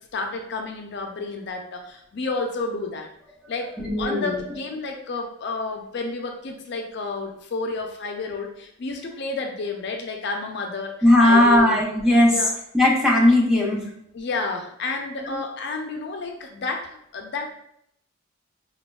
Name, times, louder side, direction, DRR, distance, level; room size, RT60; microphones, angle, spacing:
voice 1, 0.1-3.1 3.5-10.9 11.2-11.8 12.2-12.5 14.1-17.5, left 3 dB, 50° left, 3 dB, 0.4 m, -30 dB
voice 2, 3.8-4.4 11.0-12.4 12.7-13.8 15.2-15.4, left 1 dB, 5° right, -3 dB, 0.5 m, -17 dB
4.1 x 2.2 x 2.2 m, 0.72 s
head